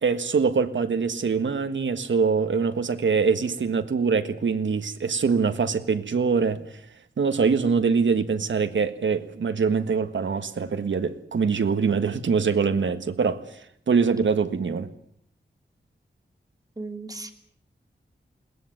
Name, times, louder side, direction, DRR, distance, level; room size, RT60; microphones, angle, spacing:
voice 1, 0.0-6.6 7.2-13.4 13.9-14.9, right 5 dB, 85° right, 1.6 m, -23 dB
voice 2, 16.8-17.3, right 2 dB, 20° right, 2.9 m, -36 dB
21.5 x 19.0 x 9.0 m
wide cardioid pair, 95°, 19 cm